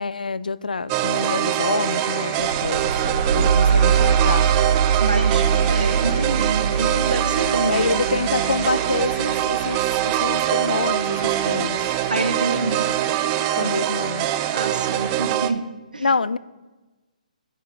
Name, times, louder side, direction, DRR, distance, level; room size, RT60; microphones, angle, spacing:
voice 1, 0.0-4.5 7.7-11.8 13.6-14.3 16.0-16.4, left 4 dB, 90° left, 18 dB, 0.3 m, -26 dB
sound 1, 0.9-15.5, right 13 dB, 25° right, 0.4 m, -23 dB
sound 2, 1.1-15.2, left 1 dB, 70° left, 1.9 m, -39 dB
sound 3, 2.4-11.6, right 6 dB, 70° right, 0.6 m, -23 dB
voice 2, 5.0-8.0 12.1-12.9 13.6-13.9 14.5-15.6 15.9-16.1, right 2 dB, 90° right, 8 dB, 1.0 m, -27 dB
9.7 x 5.2 x 4.4 m, 1.2 s
hypercardioid pair, 140°, 4 cm